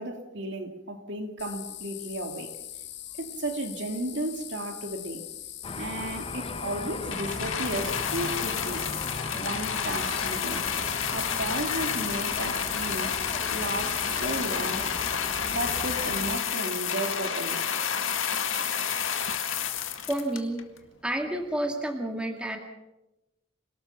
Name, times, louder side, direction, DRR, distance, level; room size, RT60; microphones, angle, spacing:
voice 1, 0.0-2.5 3.2-5.2 5.8-8.9 9.3-10.6 11.1-13.2 13.5-14.9 15.5-17.6, right 1 dB, 60° right, 2.6 m, -34 dB
sound 1, 1.4-14.3, left 12 dB, 60° left, 2.2 m, -42 dB
sound 2, 5.6-16.4, left 3 dB, 25° left, 0.9 m, -37 dB
sound 3, 7.1-20.8 21.5-21.6, left 7 dB, 75° left, 2.0 m, -30 dB
voice 2, 20.1-20.6 21.0-22.6, right 1 dB, 5° right, 2.0 m, -30 dB
27.0 x 18.5 x 5.9 m
head